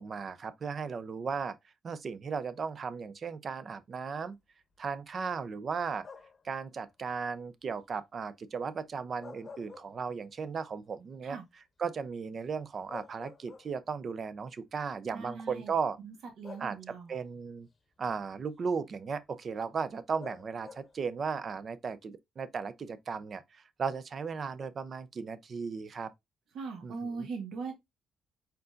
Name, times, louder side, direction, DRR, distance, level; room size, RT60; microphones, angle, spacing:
voice 1, 0.0-1.6 1.8-4.4 4.8-6.1 6.4-11.4 11.8-16.0 16.6-17.7 18.0-26.1 26.8-27.3, right 5 dB, 45° right, 0.5 m, -36 dB
sound 1, 6.0-6.5 9.0-10.4 10.8-10.9 12.4-12.5 12.9-14.0 15.1-15.2 16.4-17.2 20.2-21.1, left 5 dB, 40° left, 0.8 m, -49 dB
voice 2, 15.1-15.7 16.0-17.2 26.5-27.7, right 4 dB, 70° right, 1.4 m, -40 dB
4.5 x 3.8 x 2.5 m
cardioid pair, 90°, 0 cm